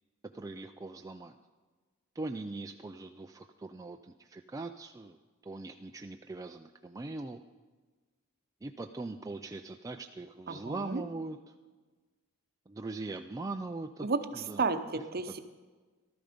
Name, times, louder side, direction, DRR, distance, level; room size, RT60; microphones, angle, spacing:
voice 1, 0.3-1.3 2.2-5.2 5.4-7.4 8.6-11.4 12.7-14.1 14.3-14.6, right 3 dB, 15° right, 5 dB, 0.3 m, -41 dB
voice 2, 10.5-11.0 14.0-15.4, right 4 dB, 45° right, 9 dB, 0.8 m, -32 dB
14.0 x 13.0 x 5.1 m, 1.4 s
head